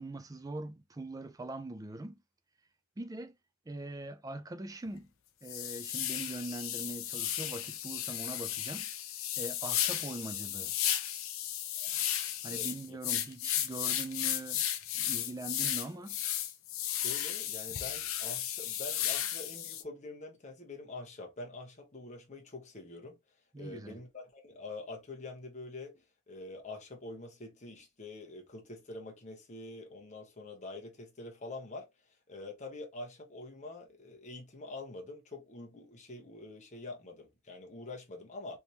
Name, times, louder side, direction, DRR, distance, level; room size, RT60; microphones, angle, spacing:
voice 1, 0.0-2.2 3.0-3.4 3.7-5.1 5.4-8.9 9.4-10.7 12.4-14.6 14.9-16.2 23.5-24.0, right 2 dB, 15° right, 0.4 m, -42 dB
sound 1, 4.9-5.0 5.5-19.8, left 11 dB, 65° left, 0.5 m, -34 dB
voice 2, 12.4-13.0 16.9-23.2 23.6-31.9 32.3-38.6, left 2 dB, 30° left, 1.0 m, -45 dB
3.4 x 3.0 x 2.7 m
head